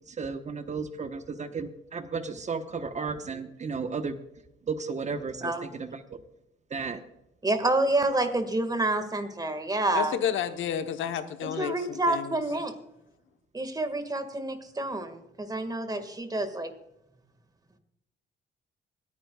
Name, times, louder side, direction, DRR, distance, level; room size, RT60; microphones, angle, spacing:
voice 1, 0.0-4.2 4.7-6.2 6.7-7.0, right 5 dB, 35° right, 9 dB, 1.1 m, -34 dB
voice 2, 7.4-10.2 11.6-12.7 13.5-16.7, right 2 dB, 20° right, 8 dB, 1.8 m, -28 dB
voice 3, 9.9-12.4, left 9 dB, 75° left, 9 dB, 1.0 m, -31 dB
25.0 x 9.6 x 2.3 m, 0.87 s
cardioid pair, 90°, 20 cm